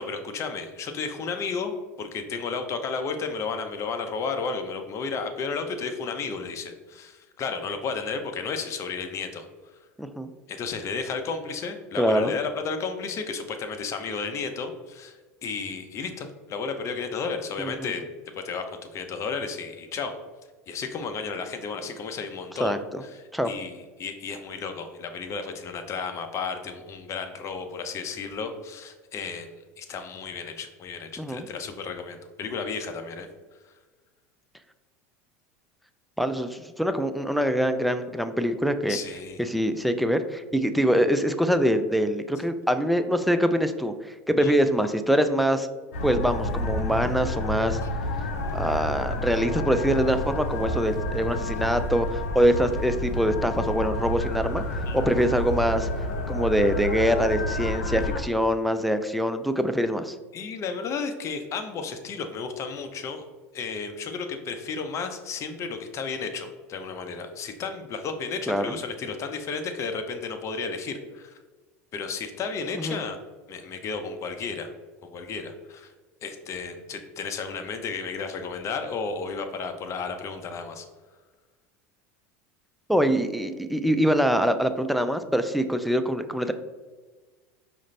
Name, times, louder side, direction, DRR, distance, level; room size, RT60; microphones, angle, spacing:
voice 1, 0.0-9.5 9.7-9.8 10.5-18.0 18.3-20.2 20.7-29.5 29.8-33.3 38.9-39.4 44.4-44.5 47.8-47.9 54.9-55.0 60.3-63.2 63.5-71.4 71.9-73.2 73.5-74.7 75.0-75.9 76.2-80.8, left 5 dB, 40° left, 6 dB, 0.6 m, -33 dB
voice 2, 10.0-10.3 12.0-12.3 17.6-17.9 22.6-23.0 23.3-23.5 31.2-31.5 36.2-39.0 39.4-45.7 46.0-47.8 48.5-55.9 56.3-60.2 68.5-68.7 72.8-73.0 82.9-86.5, equal, ahead, 8 dB, 0.3 m, -24 dB
sound 1, 45.9-58.2, left 1 dB, 80° left, 0.6 m, -29 dB
5.1 x 2.5 x 3.2 m, 1.3 s
hypercardioid pair, 95°, 8 cm